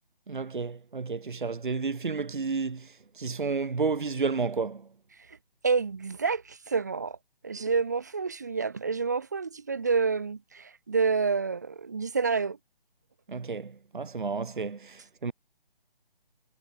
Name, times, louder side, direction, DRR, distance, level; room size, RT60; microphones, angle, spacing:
voice 1, 0.3-4.9 13.3-15.3, right 4 dB, 55° right, 1.6 m, -31 dB
voice 2, 5.6-7.2 7.4-12.6, right 5 dB, 20° right, 0.6 m, -28 dB
figure-of-eight pair, 150°, 29 cm